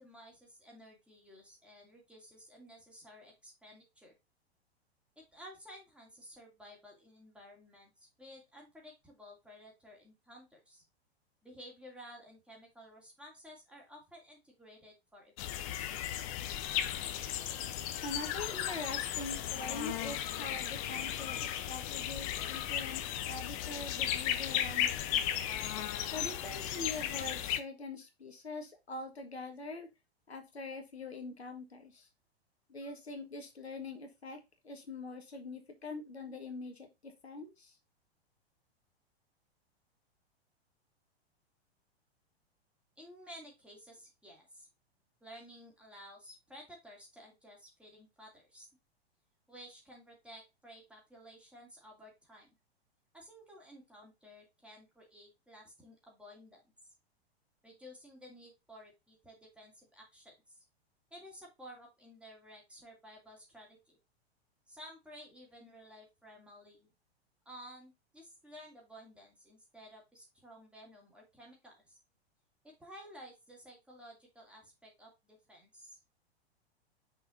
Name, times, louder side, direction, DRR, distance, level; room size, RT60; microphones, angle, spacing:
voice 1, 0.0-4.1 5.2-10.8 11.4-15.9 43.0-44.7 45.2-48.7 49.5-52.5 53.1-56.6 57.6-60.6 61.1-64.0 64.7-66.9 67.5-72.0 72.6-76.0, equal, 5° right, -2 dB, 2.6 m, -54 dB
sound 1, 15.4-27.6, left 11 dB, 35° left, 0.7 m, -35 dB
voice 2, 18.0-25.2 26.1-29.9 30.3-32.1 32.7-37.8, left 2 dB, 75° left, 4 dB, 1.6 m, -44 dB
6.1 x 4.8 x 4.0 m, 0.23 s
figure-of-eight pair, 100°, 32 cm